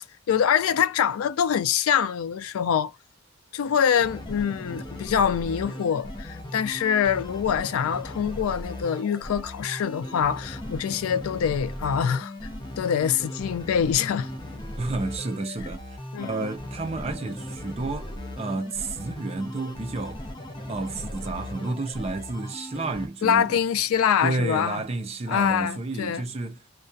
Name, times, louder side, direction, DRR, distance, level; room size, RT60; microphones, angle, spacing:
voice 1, 0.3-2.9 3.5-12.3 12.8-14.3 16.1-16.3 23.2-24.8 25.3-26.2, left 8 dB, 85° left, 0.3 m, -24 dB
sound 1, 4.0-23.1, left 1 dB, 20° left, 0.6 m, -37 dB
voice 2, 14.8-18.1 18.4-20.2 20.7-23.6 24.2-26.6, right 3 dB, 30° right, 0.4 m, -31 dB
2.3 x 2.2 x 2.6 m
head